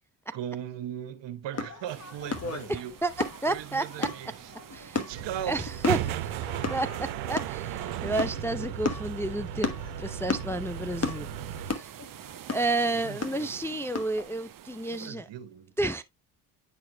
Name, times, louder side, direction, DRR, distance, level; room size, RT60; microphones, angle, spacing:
voice 1, 0.3-2.9 3.5-4.5 4.9-5.7 8.3-8.7 12.9-13.7 14.9-15.7, right 10 dB, 65° right, 1.1 m, -39 dB
sound 1, 1.5-14.2, left 4 dB, 35° left, 1.2 m, -36 dB
sound 2, 1.9-15.1, right 11 dB, 45° right, 0.6 m, -49 dB
voice 2, 2.7-4.1 4.7-5.0 5.5-6.2 6.7-11.3 11.6-11.9 12.5-15.3 15.8-16.0, right 2 dB, 5° left, 0.4 m, -31 dB
sound 3, 5.1-11.7, right 11 dB, 90° right, 0.8 m, -35 dB
9.7 x 4.7 x 2.2 m
supercardioid pair, 65°, 46 cm